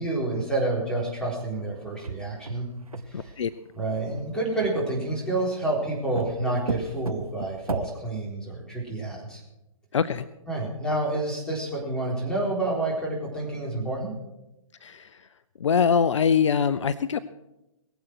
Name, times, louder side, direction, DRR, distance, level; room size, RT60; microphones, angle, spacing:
voice 1, 0.0-2.7 3.1-3.3 3.7-9.4 10.5-14.1, right 2 dB, 5° left, -3 dB, 4.0 m, -29 dB
sound 1, 1.9-3.5 4.6-5.5 6.1-8.0, right 4 dB, 85° right, 0.9 m, -35 dB
voice 2, 3.1-3.5 9.9-10.2 14.8-15.1 15.6-17.2, left 7 dB, 60° left, 15 dB, 0.6 m, -23 dB
21.0 x 8.0 x 6.1 m, 0.94 s
figure-of-eight pair, 135°, 18 cm